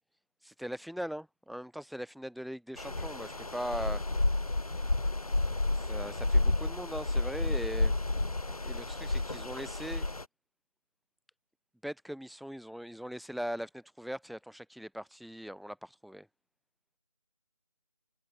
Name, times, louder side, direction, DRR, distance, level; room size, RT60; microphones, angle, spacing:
voice 1, 0.4-4.0 5.7-7.9 8.5-10.1 11.8-16.3, equal, ahead, 3.2 m, -40 dB
sound 1, 2.8-10.2, left 2 dB, 80° left, 3.7 m, -31 dB
figure-of-eight pair, 160°, 19 cm